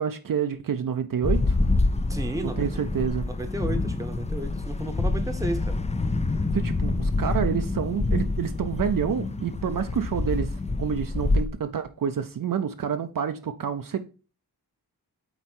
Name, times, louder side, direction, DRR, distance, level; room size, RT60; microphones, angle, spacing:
voice 1, 0.0-1.6 2.4-3.2 6.5-14.0, right 8 dB, 55° right, 0.6 m, -28 dB
sound 1, 1.2-11.4, left 2 dB, 20° left, 0.4 m, -26 dB
voice 2, 2.1-2.7 3.2-5.8, right 2 dB, 10° right, 0.9 m, -33 dB
8.0 x 4.3 x 4.4 m
wide cardioid pair, 130°, 40 cm